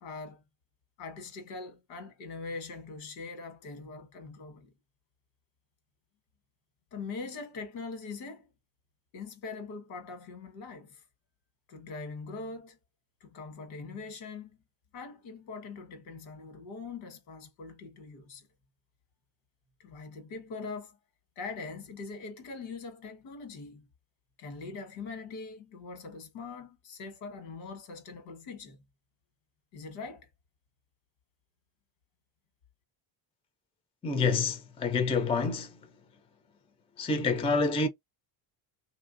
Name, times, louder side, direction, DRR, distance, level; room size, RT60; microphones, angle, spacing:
voice 1, 0.0-0.4 1.0-4.7 6.9-8.5 9.1-11.0 11.7-12.8 13.2-14.6 14.9-18.5 19.8-21.0 21.4-23.9 24.4-28.8 29.7-30.3, left 4 dB, 90° left, 1.4 m, -42 dB
voice 2, 34.0-35.7 37.0-37.9, left 4 dB, 15° left, 0.4 m, -27 dB
3.1 x 2.6 x 2.5 m
cardioid pair, 135°, 47 cm